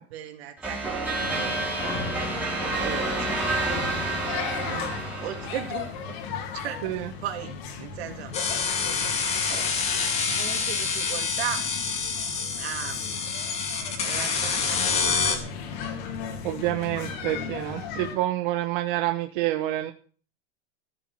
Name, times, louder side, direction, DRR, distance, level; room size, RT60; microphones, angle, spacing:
voice 1, 0.1-4.1 4.5-4.9 5.2-8.3 9.4-9.7 10.0-11.7 12.5-13.1 14.0-15.6 17.3-18.0, right 11 dB, 85° right, 5 dB, 3.1 m, -38 dB
sound 1, 0.6-6.1, right 2 dB, 5° right, 4.6 m, -29 dB
sound 2, 1.2-18.2, left 6 dB, 50° left, 3.4 m, -37 dB
sound 3, 8.3-15.4, left 5 dB, 20° left, 2.4 m, -27 dB
voice 2, 16.4-19.9, right 15 dB, 55° right, 6 dB, 1.3 m, -28 dB
15.5 x 7.4 x 7.8 m, 0.42 s
supercardioid pair, 170°, 31 cm